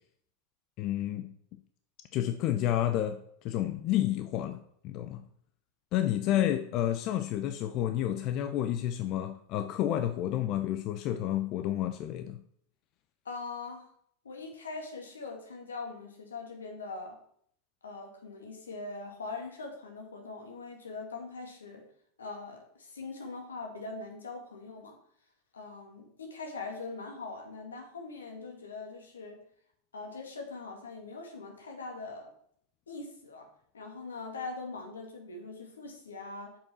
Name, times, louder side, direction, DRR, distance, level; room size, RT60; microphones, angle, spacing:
voice 1, 0.8-1.3 2.1-5.2 5.9-12.4, left 12 dB, 50° left, 0.6 m, -30 dB
voice 2, 13.2-13.8 14.2-17.2 17.8-21.8 22.2-25.0 25.5-29.4 29.9-32.3 32.9-33.5 33.7-36.6, left 3 dB, 90° left, 2.2 m, -42 dB
7.1 x 5.4 x 6.0 m
hypercardioid pair, 95°, 0 cm